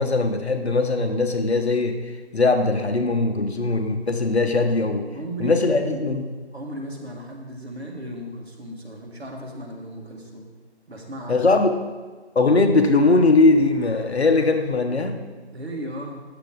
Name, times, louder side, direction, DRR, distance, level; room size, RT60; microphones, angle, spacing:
voice 1, 0.0-2.0 2.3-5.1 5.4-6.2 11.3-11.8 12.3-15.2, left 3 dB, 65° left, 6 dB, 1.0 m, -20 dB
voice 2, 5.1-6.1 6.5-10.5 10.9-11.4 15.5-16.2, right 1 dB, 65° right, 0 dB, 1.8 m, -35 dB
8.9 x 6.7 x 3.9 m, 1.4 s
figure-of-eight pair, 170°, 34 cm